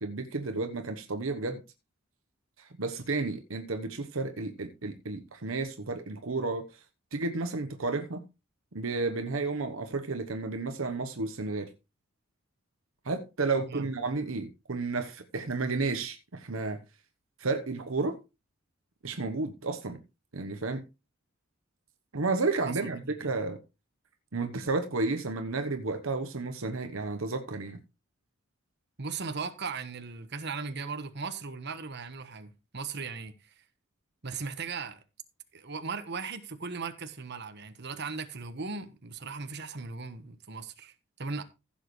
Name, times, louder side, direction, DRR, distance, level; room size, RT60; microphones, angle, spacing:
voice 1, 0.0-1.6 2.6-6.7 7.1-8.2 8.7-11.7 13.0-16.8 17.4-18.2 19.0-20.0 20.3-20.8 22.1-23.6 24.3-27.8, right 3 dB, 70° right, 1.1 m, -32 dB
voice 2, 22.7-23.1 29.0-33.6 34.2-35.0 35.5-41.4, right 4 dB, 55° right, 1.3 m, -38 dB
15.5 x 7.4 x 3.2 m
head